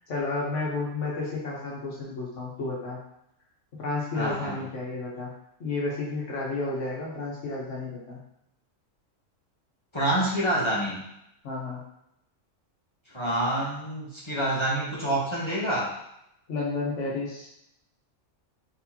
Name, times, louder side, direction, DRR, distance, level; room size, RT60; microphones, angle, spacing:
voice 1, 0.1-3.0 3.8-5.3 5.6-8.2 11.4-11.8 16.5-17.5, left 3 dB, 60° left, -4 dB, 1.4 m, -31 dB
voice 2, 4.1-4.6 9.9-11.0 13.1-15.9, right 1 dB, 25° left, -7 dB, 1.0 m, -27 dB
4.3 x 3.3 x 2.8 m, 0.81 s
omnidirectional pair, 1.4 m